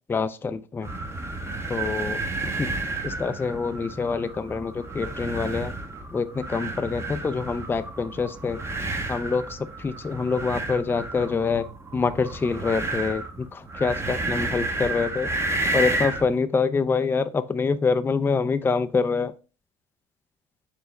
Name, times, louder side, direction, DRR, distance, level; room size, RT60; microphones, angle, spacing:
voice 1, 0.1-0.9 1.7-2.7 3.0-5.7 6.1-8.6 9.1-11.7 11.9-15.3 15.7-19.3, left 4 dB, 15° left, 12 dB, 0.3 m, -26 dB
sound 1, 0.8-16.3, right 2 dB, 15° right, 0.7 m, -31 dB
4.6 x 3.2 x 3.1 m, 0.34 s
hypercardioid pair, 80°, 17 cm